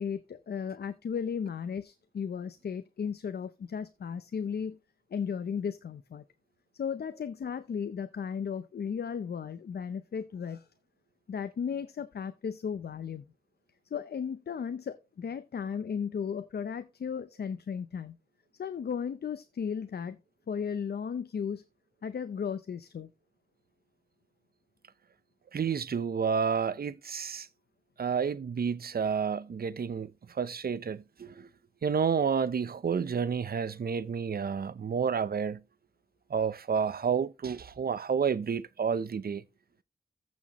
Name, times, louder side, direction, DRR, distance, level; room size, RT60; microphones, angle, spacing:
voice 1, 0.0-4.8 5.1-6.2 6.8-10.7 11.3-13.2 13.9-18.2 18.6-20.2 20.5-21.6 22.0-23.1, left 7 dB, 85° left, 0.6 m, -35 dB
voice 2, 25.5-27.5 28.0-31.5 31.8-35.6 36.3-39.4, right 6 dB, 70° right, 0.7 m, -30 dB
14.5 x 6.2 x 3.0 m
wide cardioid pair, 75°, 16 cm